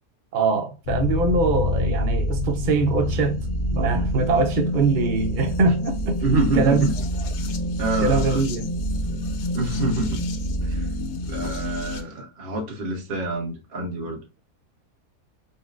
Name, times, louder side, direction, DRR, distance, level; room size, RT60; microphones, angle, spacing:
voice 1, 0.3-3.4 3.7-6.2 6.5-6.8 8.0-8.7, right 4 dB, 65° right, 0.4 m, -22 dB
sound 1, 0.9-12.0, left 1 dB, 70° left, 1.0 m, -26 dB
voice 2, 6.2-6.9 7.8-8.4 9.5-10.2 10.6-10.9 11.3-14.2, right 2 dB, 40° right, 0.9 m, -26 dB
4.0 x 2.1 x 2.4 m
omnidirectional pair, 1.6 m